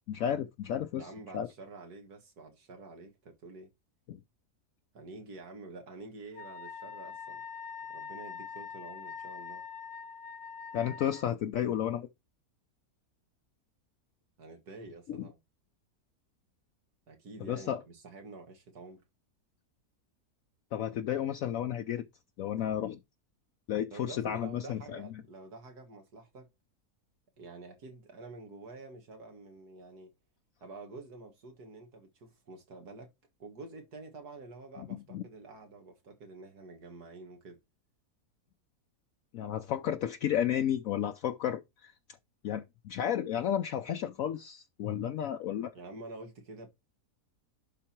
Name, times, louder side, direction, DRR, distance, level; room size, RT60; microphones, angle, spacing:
voice 1, 0.1-1.1 1.3-1.5 4.1-4.2 10.7-12.1 15.1-15.2 17.4-17.8 20.7-22.0 22.4-23.0 23.7-24.8 35.1-35.2 39.3-41.9 42.4-45.7, left 10 dB, 65° left, 1.0 m, -32 dB
voice 2, 1.0-3.7 4.9-7.4 7.9-9.6 14.4-15.4 17.1-19.0 23.9-26.5 27.4-30.1 30.6-33.1 33.4-37.6 45.7-46.7, right 3 dB, 80° right, 2.2 m, -48 dB
Wind instrument woodwind instrument, 6.3-11.3, left 6 dB, 85° left, 2.0 m, -44 dB
11.0 x 4.3 x 4.4 m
omnidirectional pair, 1.6 m